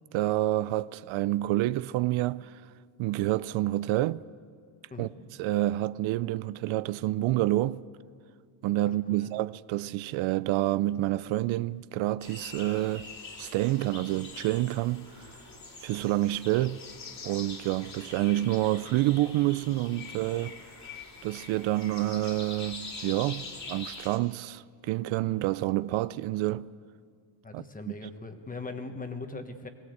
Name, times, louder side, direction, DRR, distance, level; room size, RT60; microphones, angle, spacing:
voice 1, 0.1-2.6 3.0-4.2 5.0-5.1 5.4-7.8 8.6-13.1 13.4-15.3 15.8-16.8 17.2-20.6 21.2-26.7 27.5-27.6, right 16 dB, 85° right, 0.5 m, -28 dB
voice 2, 8.8-9.3 27.4-29.7, left 3 dB, 20° left, 1.3 m, -40 dB
sound 1, 12.2-24.2, left 3 dB, 35° left, 2.4 m, -44 dB
21.5 x 17.0 x 7.9 m
cardioid pair, 140°, 46 cm